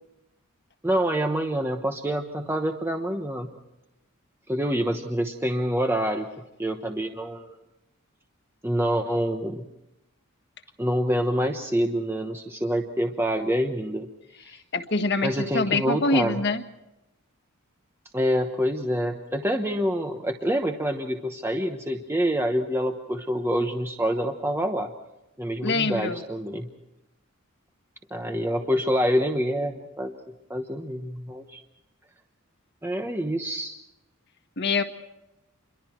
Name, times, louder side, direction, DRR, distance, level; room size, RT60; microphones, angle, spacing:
voice 1, 0.8-3.5 4.5-7.6 8.6-9.7 10.8-14.1 14.4-14.6 15.2-16.4 18.1-24.9 25.4-26.7 28.1-30.2 30.5-31.6 32.8-33.7, equal, 10° right, 4 dB, 1.0 m, -26 dB
voice 2, 14.7-16.6 25.6-26.2 34.6-34.8, left 3 dB, 50° left, 8 dB, 1.6 m, -24 dB
27.5 x 23.0 x 4.5 m, 0.94 s
head